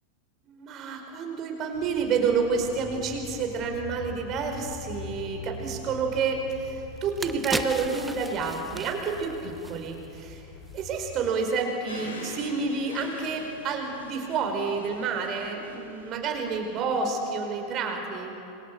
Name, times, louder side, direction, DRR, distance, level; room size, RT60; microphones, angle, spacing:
voice 1, 0.4-10.5 10.7-18.3, right 5 dB, 35° right, 4 dB, 5.0 m, -29 dB
sound 1, 1.7-11.3, left 4 dB, 55° left, 4.4 m, -43 dB
wood snap and dirt slide, 6.5-6.6 7.0-10.3 10.6-10.7, right 2 dB, 10° right, 1.2 m, -36 dB
sound 2, 11.9-16.9, left 2 dB, 75° left, 5.1 m, -44 dB
28.0 x 24.0 x 6.8 m, 2.8 s
figure-of-eight pair, 85°, 0 cm